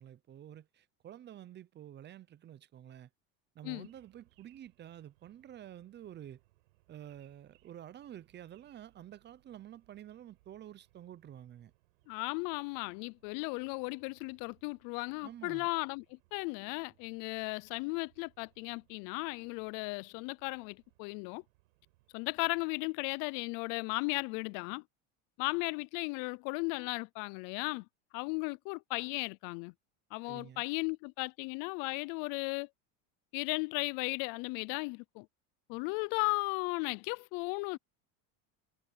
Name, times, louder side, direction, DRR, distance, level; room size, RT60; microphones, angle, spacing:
voice 1, 0.0-3.1 3.6-6.4 6.9-11.7 15.2-15.7 30.3-30.6, right 11 dB, 25° right, 0.6 m, -50 dB
sound 1, 3.8-22.6, right 22 dB, 85° right, 6.0 m, -71 dB
voice 2, 12.1-21.4 22.1-24.8 25.4-27.9 28.1-29.7 30.1-32.7 33.3-35.3 35.7-37.8, left 29 dB, 60° left, 0.5 m, -36 dB
supercardioid pair, 135°, 40 cm